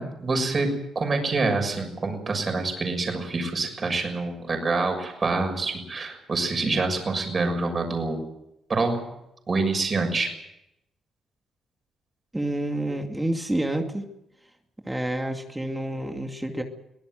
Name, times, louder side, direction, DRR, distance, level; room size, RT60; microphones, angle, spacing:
voice 1, 0.0-8.2 8.7-9.0 9.5-10.3, right 3 dB, 35° right, 5 dB, 6.7 m, -26 dB
voice 2, 12.3-14.1 14.9-16.6, right 1 dB, 10° right, 4 dB, 2.4 m, -28 dB
24.0 x 17.0 x 7.9 m, 0.86 s
cardioid pair, 90°, 0 cm